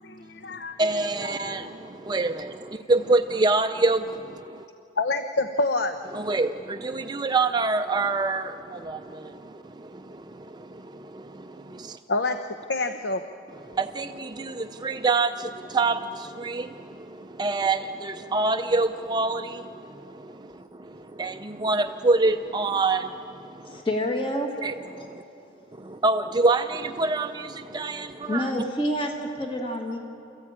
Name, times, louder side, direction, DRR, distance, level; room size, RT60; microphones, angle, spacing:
voice 1, 0.0-0.8 1.2-1.8 5.0-6.0 12.1-13.2, left 2 dB, 65° left, 7 dB, 0.9 m, -27 dB
voice 2, 0.8-4.7 6.1-12.0 13.7-23.8 24.6-25.2 25.7-28.5, right 3 dB, 25° right, 7 dB, 0.5 m, -27 dB
voice 3, 23.7-24.5 25.0-25.1 28.3-30.0, left 1 dB, 30° left, 2 dB, 1.7 m, -28 dB
29.0 x 14.5 x 8.8 m, 2.7 s
head